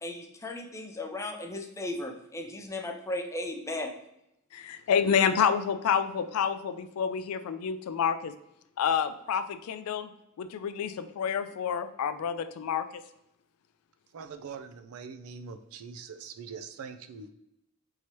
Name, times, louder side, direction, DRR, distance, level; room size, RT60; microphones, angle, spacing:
voice 1, 0.0-3.9, left 2 dB, 15° left, 3 dB, 0.4 m, -36 dB
voice 2, 4.5-8.3 8.8-10.1 10.4-13.0, left 7 dB, 75° left, 11 dB, 0.4 m, -28 dB
voice 3, 14.1-17.3, right 5 dB, 70° right, 9 dB, 0.4 m, -43 dB
4.6 x 2.8 x 2.9 m, 0.81 s
head